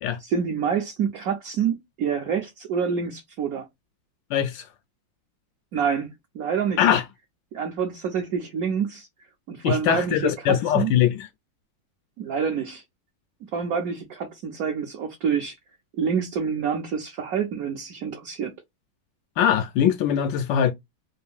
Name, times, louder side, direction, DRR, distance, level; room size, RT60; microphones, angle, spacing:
voice 1, 0.2-3.7 5.7-6.8 7.5-9.1 9.5-10.9 12.2-12.8 13.5-15.5 16.0-18.5, right 7 dB, 65° right, 0.9 m, -27 dB
voice 2, 4.3-4.7 6.8-7.0 9.6-11.3 19.4-20.7, left 9 dB, 75° left, 1.2 m, -21 dB
3.5 x 2.7 x 3.4 m
omnidirectional pair, 2.2 m